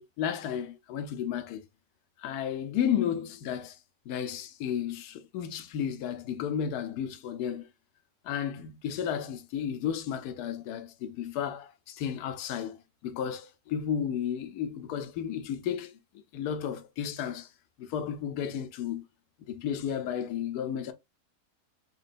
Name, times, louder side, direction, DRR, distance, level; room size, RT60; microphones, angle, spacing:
voice 1, 0.0-1.6 2.2-3.8 4.1-7.7 8.2-16.0 16.3-17.5 17.8-19.0 19.5-20.9, left 8 dB, 85° left, 1.2 m, -33 dB
4.3 x 3.1 x 2.5 m
omnidirectional pair, 1.6 m